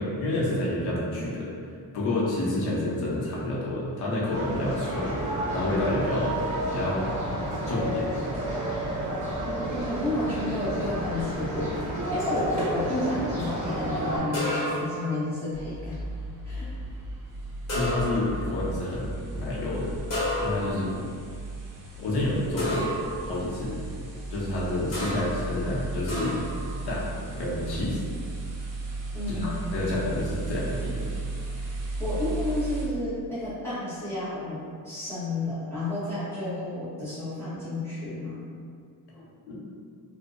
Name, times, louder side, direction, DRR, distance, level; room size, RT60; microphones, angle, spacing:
voice 1, 0.0-1.5 1.9-5.1 5.5-6.4 6.7-7.1 7.6-8.1 8.5-8.6 17.7-19.9 20.4-20.9 22.0-23.8 24.3-26.4 26.8-28.0 29.3-31.1 39.2-39.5, left 1 dB, 90° left, -6 dB, 0.7 m, -29 dB
sound 1, 4.3-14.2, equal, 20° right, 1.1 m, -31 dB
voice 2, 9.4-16.0 16.4-16.7 20.6-21.0 29.1-29.6 32.0-34.6 34.8-38.4, left 1 dB, 5° left, -14 dB, 1.0 m, -31 dB
sound 2, 14.3-15.1 17.7-18.4 20.1-20.9 22.6-23.1 24.9-25.4 26.1-26.6, left 1 dB, 40° left, 1.0 m, -30 dB
sound 3, 15.5-32.8, right 2 dB, 45° right, 0.6 m, -35 dB
2.6 x 2.1 x 2.5 m, 2.2 s
cardioid pair, 115°, 38 cm